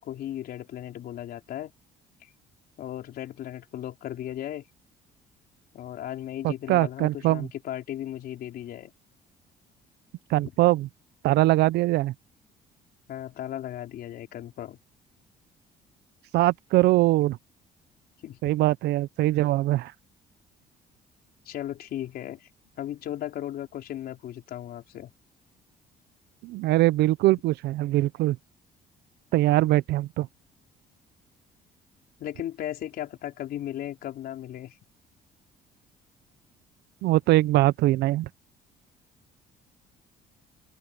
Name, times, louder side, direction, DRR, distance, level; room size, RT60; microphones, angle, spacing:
voice 1, 0.0-1.7 2.2-2.3 2.8-4.6 5.7-8.9 13.1-14.8 18.2-18.5 21.5-22.5 22.8-25.1 32.2-34.8, left 12 dB, 65° left, 4.1 m, -36 dB
voice 2, 6.4-7.5 10.3-10.9 11.2-12.1 16.3-17.4 18.4-19.9 26.4-28.4 29.3-30.3 37.0-38.3, right 17 dB, 75° right, 0.6 m, -22 dB
open air
cardioid pair, 110°, 17 cm